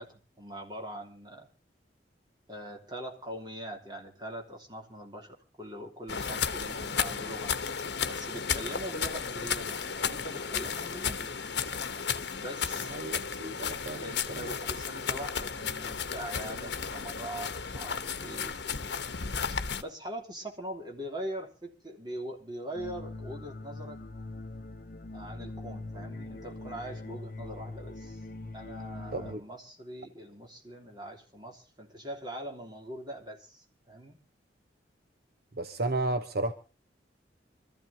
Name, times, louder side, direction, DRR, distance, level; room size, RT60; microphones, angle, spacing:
voice 1, 0.0-1.5 2.5-7.5 8.1-11.4 12.4-13.0 14.0-19.1 19.8-24.0 25.1-28.2 28.5-34.2, right 1 dB, 25° right, 3.2 m, -42 dB
sound 1, 6.1-19.8, left 6 dB, 70° left, 1.0 m, -34 dB
voice 2, 12.9-14.5 29.1-29.4 35.5-36.5, right 2 dB, 60° right, 1.0 m, -33 dB
sound 2, 22.7-29.3, left 2 dB, 50° left, 0.8 m, -42 dB
26.0 x 14.0 x 2.8 m
head